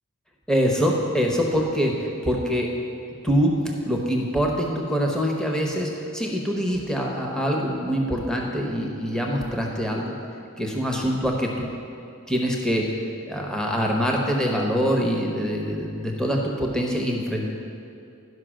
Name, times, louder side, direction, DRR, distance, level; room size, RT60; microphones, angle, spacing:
voice 1, 0.5-2.7 3.2-10.1 10.6-11.7 12.3-13.0 13.3-17.5, equal, 5° left, -1 dB, 0.8 m, -24 dB
11.0 x 5.4 x 6.2 m, 2.6 s
head